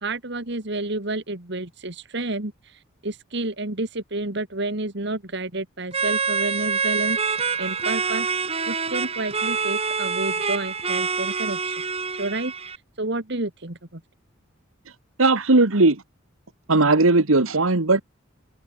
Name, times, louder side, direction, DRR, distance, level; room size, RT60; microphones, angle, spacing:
voice 1, 0.0-8.3 8.7-11.8 12.2-14.0, right 2 dB, 55° right, 2.3 m, -30 dB
sound 1, 5.9-12.8, right 5 dB, 30° right, 3.8 m, -26 dB
voice 2, 15.2-16.0 16.7-18.0, right 2 dB, 85° right, 1.7 m, -17 dB
head